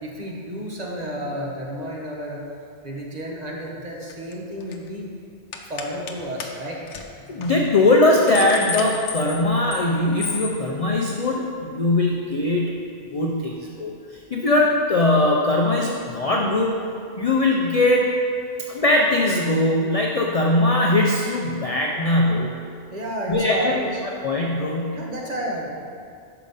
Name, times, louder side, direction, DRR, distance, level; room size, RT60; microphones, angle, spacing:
voice 1, 0.0-2.5 2.8-5.1 5.7-6.8 22.9-24.0 24.9-25.7, equal, 40° right, -3 dB, 1.0 m, -31 dB
sound 1, 4.1-4.3 4.6-4.9 5.5-6.1 6.4-6.5 6.9-7.0 7.4-7.5 8.0-9.9 10.2-10.6, left 6 dB, 85° left, 0.9 m, -32 dB
voice 2, 7.3-12.8 13.1-16.8 17.2-18.1 18.7-22.6 23.3-23.7 24.0-25.1, left 2 dB, 50° left, -1 dB, 0.4 m, -20 dB
5.8 x 5.0 x 5.3 m, 2.4 s
omnidirectional pair, 1.2 m